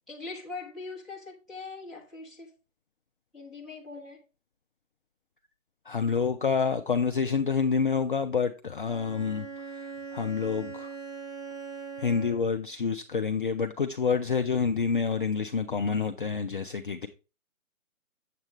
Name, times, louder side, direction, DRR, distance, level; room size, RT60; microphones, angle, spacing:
voice 1, 0.1-2.6 3.3-4.2, left 3 dB, ahead, 1.0 m, -41 dB
voice 2, 5.9-9.5 9.7-10.9 12.0-17.1, left 5 dB, 40° left, 0.4 m, -28 dB
Bowed string instrument, 8.8-12.7, right 5 dB, 70° right, 2.1 m, -41 dB
7.8 x 7.4 x 3.1 m
figure-of-eight pair, 140°, 41 cm